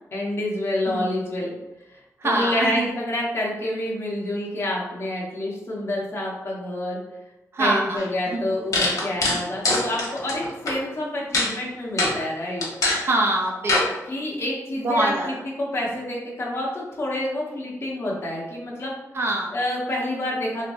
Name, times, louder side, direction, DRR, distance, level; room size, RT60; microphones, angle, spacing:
voice 1, 0.1-1.5 1.9-7.0 7.6-12.7 14.1-18.9 19.5-20.6, left 1 dB, 45° left, -3 dB, 0.9 m, -28 dB
voice 2, 2.2-2.9 7.5-8.0 8.3-8.5 13.1-13.8 14.8-15.3 19.1-19.5, right 2 dB, 45° right, 1 dB, 0.5 m, -23 dB
sound 1, 8.0-8.1 8.7-10.7 11.3-11.5 12.0-12.2 12.6-13.0 13.7-13.9, left 2 dB, 75° left, 1.1 m, -22 dB
3.1 x 3.0 x 2.6 m, 1.0 s
wide cardioid pair, 165°, 6 cm